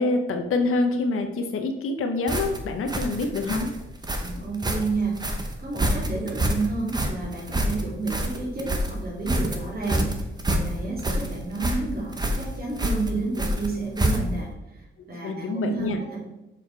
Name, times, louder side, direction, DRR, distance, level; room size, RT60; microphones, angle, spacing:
voice 1, 0.0-3.7 15.2-16.0, left 3 dB, 85° left, 5 dB, 0.8 m, -26 dB
sound 1, 2.3-14.5, right 1 dB, 20° right, 0.9 m, -27 dB
voice 2, 4.2-5.2 5.6-10.1 10.4-14.5 14.7-16.2, right 3 dB, 45° right, -3 dB, 2.6 m, -30 dB
6.7 x 4.9 x 4.5 m, 0.96 s
wide cardioid pair, 125°, 21 cm